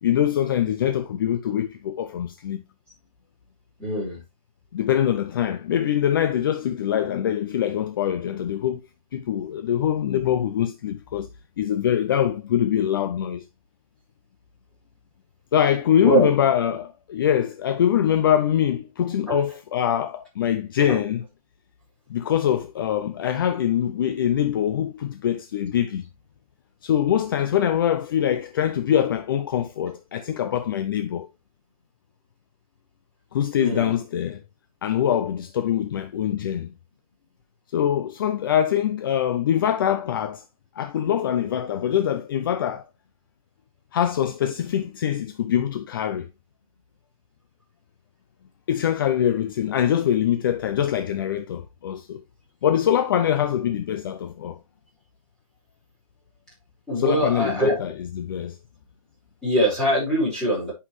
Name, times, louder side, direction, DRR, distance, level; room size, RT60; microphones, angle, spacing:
voice 1, 0.0-2.6 4.7-8.8 9.1-11.3 11.6-13.4 15.5-21.3 22.1-26.0 26.8-31.3 33.3-34.4 34.8-36.7 37.7-40.4 40.8-42.8 43.9-46.3 48.7-52.2 52.6-54.6 57.0-58.6, left 10 dB, 40° left, 0.6 m, -23 dB
voice 2, 3.8-4.2 16.0-16.3 19.3-19.4 20.9-21.0 33.6-33.9 56.9-57.8 59.4-60.7, right 1 dB, 5° left, 4.7 m, -22 dB
10.0 x 5.5 x 3.1 m
hypercardioid pair, 160°, 18 cm